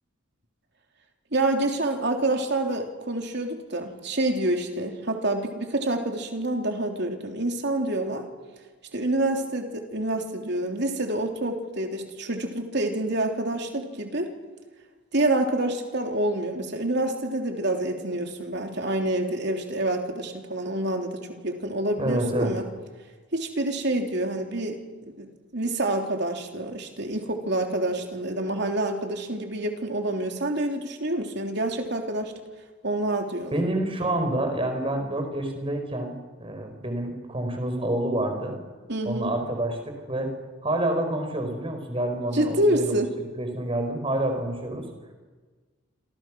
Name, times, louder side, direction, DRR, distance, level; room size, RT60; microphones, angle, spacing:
voice 1, 1.3-8.3 8.9-14.3 15.1-22.6 23.3-24.8 25.2-32.3 32.8-33.5 38.9-39.3 42.3-43.1, right 1 dB, 55° right, 3 dB, 3.4 m, -27 dB
voice 2, 22.0-22.5 33.5-38.6 39.0-40.3 40.6-43.0 43.3-44.9, right 1 dB, 25° right, 5 dB, 4.7 m, -28 dB
27.5 x 27.0 x 6.3 m, 1.3 s
head